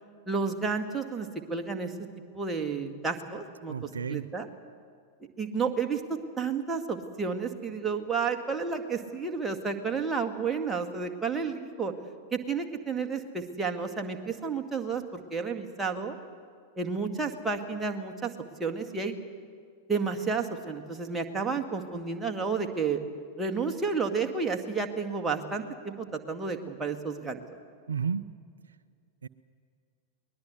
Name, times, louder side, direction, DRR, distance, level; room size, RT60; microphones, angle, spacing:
voice 1, 0.3-1.9 2.3-3.7 4.1-4.5 5.4-11.9 12.3-16.2 16.8-18.3 18.6-19.2 19.9-23.0 23.4-27.4, right 5 dB, 10° right, 3 dB, 2.0 m, -31 dB
voice 2, 3.7-4.3 27.9-28.2 28.7-28.8 29.2-29.3, right 6 dB, 70° right, 15 dB, 0.5 m, -32 dB
22.0 x 20.0 x 8.1 m, 2.1 s
figure-of-eight pair, 90°, 0 cm